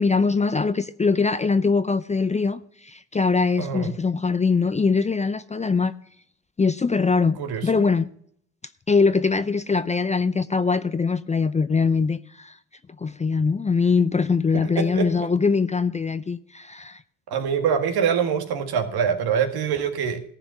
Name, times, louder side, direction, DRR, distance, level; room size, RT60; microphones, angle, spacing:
voice 1, 0.0-5.9 6.6-8.1 8.9-12.5 13.0-17.0, left 4 dB, 20° left, 0.5 m, -22 dB
voice 2, 3.6-3.9 7.4-7.8 14.5-15.1 17.3-20.2, right 7 dB, 65° right, 1.8 m, -24 dB
14.5 x 5.1 x 7.5 m
supercardioid pair, 65°, 40 cm